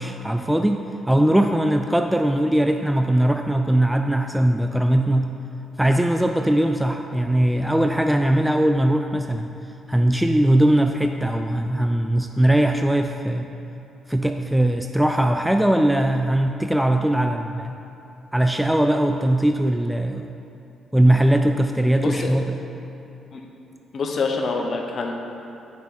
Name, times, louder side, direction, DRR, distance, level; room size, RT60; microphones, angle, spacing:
voice 1, 0.0-5.3 5.8-9.5 9.9-13.5 14.1-17.8 18.3-20.3 20.9-22.6, right 1 dB, 5° right, 5 dB, 0.3 m, -20 dB
voice 2, 21.9-22.3 23.3-23.4 23.9-25.1, left 4 dB, 50° left, 2 dB, 0.9 m, -26 dB
8.7 x 5.8 x 4.2 m, 2.9 s
cardioid pair, 90°, 0 cm